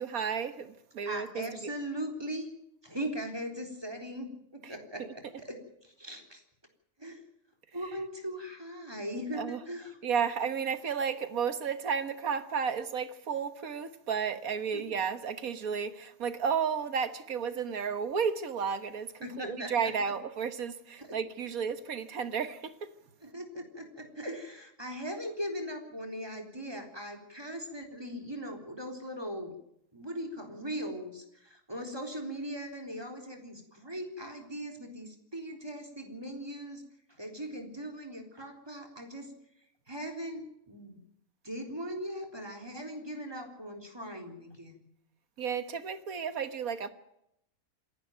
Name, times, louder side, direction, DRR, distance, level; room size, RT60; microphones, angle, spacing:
voice 1, 0.0-1.4 9.3-9.6 10.0-22.9 45.4-46.9, right 6 dB, 70° right, 1.7 m, -32 dB
voice 2, 1.1-2.5 2.8-6.4 7.0-7.2 7.7-10.0 14.7-14.8 19.2-19.9 21.0-21.2 23.2-29.6 29.9-36.8 37.1-39.3 39.9-41.0 41.4-44.8, equal, 15° right, 3.6 m, -39 dB
27.0 x 11.0 x 9.1 m
omnidirectional pair, 1.5 m